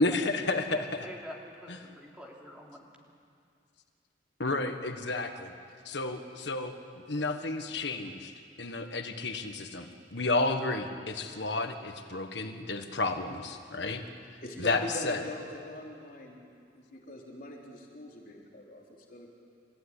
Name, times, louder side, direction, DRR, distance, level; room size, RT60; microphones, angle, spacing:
voice 1, 0.0-1.1 1.7-1.8 4.4-5.5 5.8-6.7 7.1-14.0 14.6-15.2, left 2 dB, 75° left, 6 dB, 1.4 m, -31 dB
voice 2, 0.7-2.9, equal, 5° right, -2 dB, 3.4 m, -46 dB
voice 3, 14.4-16.4 16.7-18.8 19.1-19.3, left 1 dB, 50° left, -2 dB, 3.7 m, -41 dB
30.0 x 15.0 x 9.9 m, 2.3 s
head